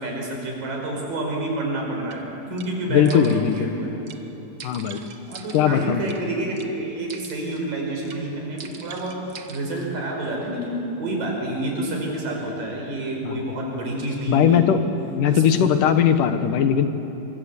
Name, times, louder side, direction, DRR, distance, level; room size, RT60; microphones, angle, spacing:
voice 1, 0.0-2.2 2.5-4.0 5.3-9.2 9.5-14.7 15.2-15.4, right 1 dB, 90° right, 0 dB, 6.9 m, -28 dB
sound 1, 2.1-2.2 2.6-2.7 3.0-3.6 4.1-4.2 4.6-6.2 6.6-6.7 7.1-7.6 8.0-8.2 8.6-9.9, right 7 dB, 55° right, 1.5 m, -42 dB
voice 2, 2.9-3.7 4.6-5.0 5.5-6.0 13.2-13.5 14.3-14.8 15.1-16.9, left 8 dB, 75° left, 9 dB, 2.8 m, -19 dB
25.0 x 24.0 x 8.4 m, 2.9 s
omnidirectional pair, 3.8 m